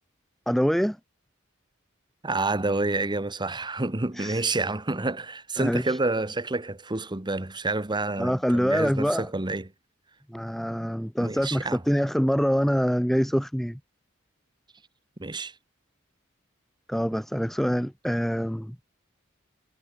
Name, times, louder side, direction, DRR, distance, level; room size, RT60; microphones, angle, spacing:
voice 1, 0.5-1.0 4.2-4.4 5.6-6.0 8.2-9.3 10.3-13.8 16.9-18.8, equal, ahead, 2.5 m, -25 dB
voice 2, 2.2-9.7 11.2-11.8 15.2-15.5, right 2 dB, 20° right, 1.2 m, -28 dB
head